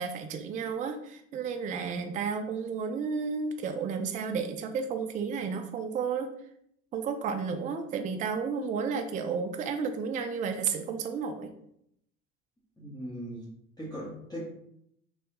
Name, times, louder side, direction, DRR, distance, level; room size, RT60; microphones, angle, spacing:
voice 1, 0.0-6.3 6.9-11.5, right 5 dB, 25° right, 7 dB, 0.3 m, -32 dB
voice 2, 12.8-13.5 13.8-14.4, equal, 10° left, -9 dB, 1.2 m, -39 dB
3.3 x 2.4 x 2.8 m, 0.73 s
hypercardioid pair, 65°, 34 cm